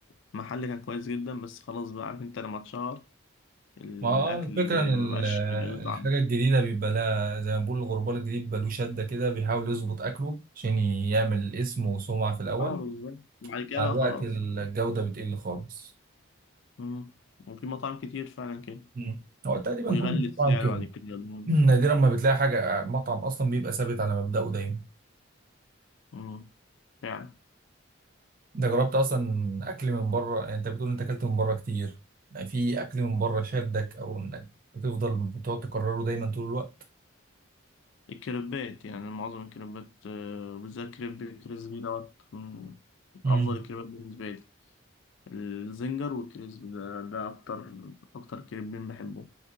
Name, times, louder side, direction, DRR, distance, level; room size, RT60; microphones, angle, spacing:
voice 1, 0.3-3.0 3.8-6.1 12.6-14.3 14.6-14.7 16.8-17.1 17.5-18.9 19.9-21.6 26.1-26.5 27.0-27.3 38.1-42.8 43.2-44.4 45.3-49.3, left 5 dB, 65° left, 0.4 m, -37 dB
voice 2, 4.0-12.8 13.7-15.9 19.0-19.2 19.4-20.8 21.5-24.8 28.5-31.9 32.3-34.5 34.7-36.7 43.2-43.6, right 3 dB, 40° right, 0.5 m, -27 dB
3.6 x 2.6 x 2.5 m
head